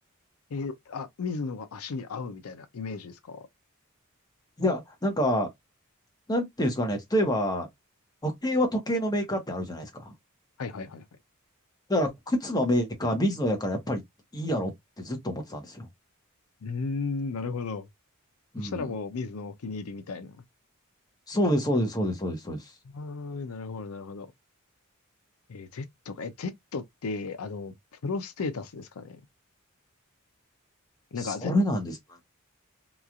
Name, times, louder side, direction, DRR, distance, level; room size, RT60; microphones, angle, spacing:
voice 1, 0.5-3.5 10.6-11.0 16.6-17.9 18.6-20.4 22.9-24.3 25.5-27.7 28.0-29.2 31.1-31.5, left 4 dB, 85° left, 0.5 m, -35 dB
voice 2, 4.6-5.5 6.3-7.7 8.2-10.1 11.9-14.0 14.3-14.7 15.0-15.9 18.5-18.9 21.3-22.7 31.2-32.2, equal, 20° left, 0.9 m, -27 dB
3.0 x 2.3 x 2.4 m
head